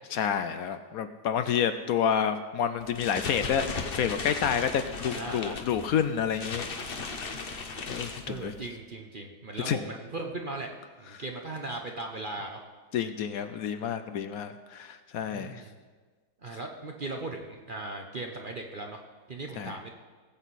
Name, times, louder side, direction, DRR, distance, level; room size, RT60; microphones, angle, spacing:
voice 1, 0.1-6.7 7.1-7.3 7.9-8.5 9.7-9.8 11.1-11.2 12.9-15.6 19.6-19.8, left 8 dB, 70° left, 10 dB, 1.0 m, -29 dB
sound 1, 2.8-8.7, left 4 dB, 40° left, 1.0 m, -37 dB
voice 2, 5.2-5.6 8.2-10.7 11.0-12.6 15.3-15.7 16.4-19.0 19.3-19.9, right 2 dB, 40° right, 2 dB, 0.7 m, -38 dB
18.5 x 8.1 x 4.1 m, 1.4 s
omnidirectional pair, 1.8 m